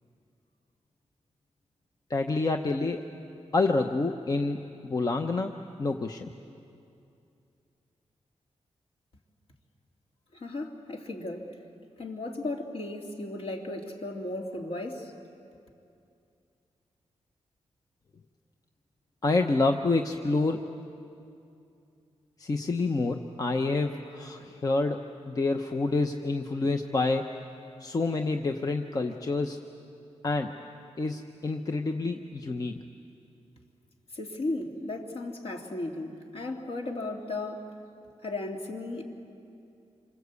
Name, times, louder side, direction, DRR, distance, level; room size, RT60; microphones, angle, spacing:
voice 1, 2.1-3.1 3.5-5.5 5.8-6.3 19.2-20.6 22.4-27.3 27.8-29.6 30.2-30.6 31.0-32.8, left 3 dB, 30° left, 5 dB, 0.9 m, -28 dB
voice 2, 10.3-11.6 12.0-15.1 34.1-37.7 38.2-39.0, left 2 dB, 55° left, 1 dB, 2.7 m, -35 dB
27.5 x 25.5 x 8.3 m, 2.6 s
wide cardioid pair, 160°, 12 cm